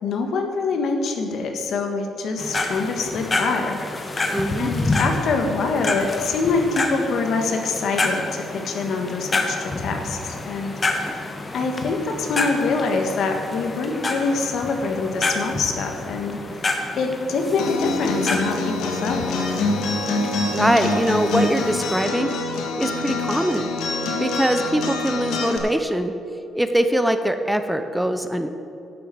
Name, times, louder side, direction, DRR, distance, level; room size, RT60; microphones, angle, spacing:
voice 1, 0.0-3.8 4.6-10.7 11.1-11.2 11.5-16.4 17.0-19.2, left 4 dB, 70° left, 4 dB, 1.6 m, -25 dB
sound 1, 2.4-22.0, left 2 dB, 30° left, 1.3 m, -29 dB
voice 2, 4.3-4.7 20.5-22.3 22.8-23.7 24.2-26.1 26.5-28.5, equal, 5° right, 8 dB, 0.7 m, -22 dB
Acoustic guitar, 17.6-25.6, left 3 dB, 85° left, 1.9 m, -25 dB
11.5 x 6.9 x 7.8 m, 2.8 s
cardioid pair, 90°, 0 cm